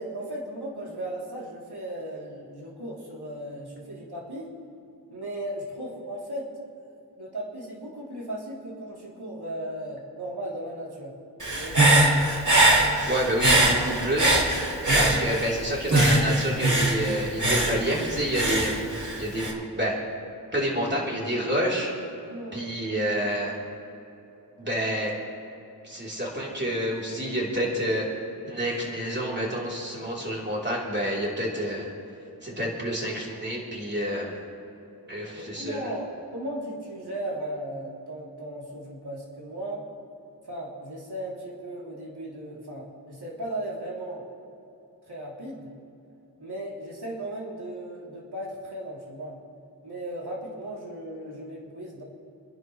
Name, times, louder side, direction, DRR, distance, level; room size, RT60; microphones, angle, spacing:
voice 1, 0.0-4.6 5.1-6.8 7.2-11.1 11.6-12.1 22.3-22.6 32.5-32.7 35.4-36.1 36.3-39.8 40.4-44.3 45.1-45.7 46.4-49.4 49.8-52.0, right 1 dB, 80° right, -5 dB, 3.2 m, -36 dB
Human voice / Breathing, 11.4-15.6 15.9-19.5, right 1 dB, 50° right, 2.6 m, -22 dB
voice 2, 13.0-14.5 14.9-18.8 19.2-20.0 20.5-21.9 22.5-23.5 24.6-25.1 25.8-28.1 28.5-31.9 32.4-34.4 35.1-35.9, equal, 30° right, -4 dB, 3.5 m, -28 dB
29.0 x 11.0 x 3.2 m, 2.9 s
wide cardioid pair, 65°, 38 cm